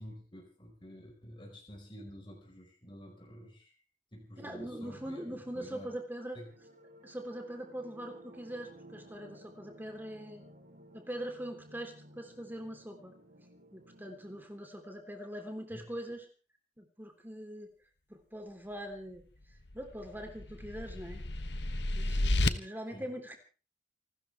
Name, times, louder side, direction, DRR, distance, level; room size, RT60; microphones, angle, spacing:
voice 1, 0.0-3.7 4.1-5.9 6.3-6.5 15.7-15.9 22.9-23.0, equal, 30° left, 0 dB, 4.8 m, -50 dB
sound 1, 4.3-14.4, right 1 dB, 50° right, 3.7 m, -56 dB
voice 2, 4.4-6.4 7.0-10.4 10.9-13.1 13.7-16.3 16.8-17.7 18.1-19.2 19.7-21.2 21.9-23.4, equal, 10° right, 4 dB, 3.6 m, -42 dB
sound 2, 19.7-22.5, left 2 dB, 70° left, 1.2 m, -32 dB
29.0 x 13.5 x 3.5 m, 0.36 s
head